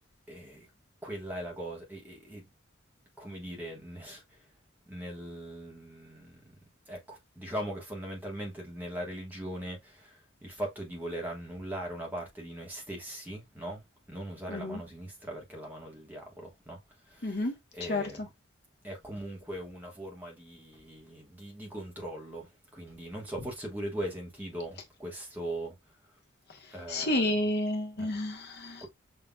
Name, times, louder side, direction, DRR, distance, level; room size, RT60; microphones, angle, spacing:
voice 1, 0.3-0.7 1.0-2.5 3.2-4.5 4.9-6.6 6.9-18.2 18.8-26.2 26.7-27.3 28.0-28.2 28.8-28.9, right 1 dB, 10° right, 1.2 m, -40 dB
voice 2, 14.5-14.8 17.2-17.5 17.9-18.3 26.5-28.9, left 1 dB, 55° left, 0.9 m, -31 dB
5.6 x 2.8 x 2.2 m
head